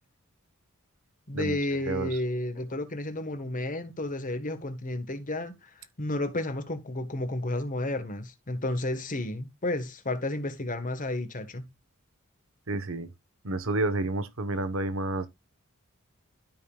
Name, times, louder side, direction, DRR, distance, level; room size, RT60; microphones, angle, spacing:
voice 1, 1.3-5.7 6.0-11.7, left 1 dB, 40° left, 1.4 m, -32 dB
voice 2, 1.8-2.2 12.7-13.1 13.4-15.3, right 2 dB, 65° right, 1.3 m, -30 dB
12.5 x 5.4 x 2.4 m
head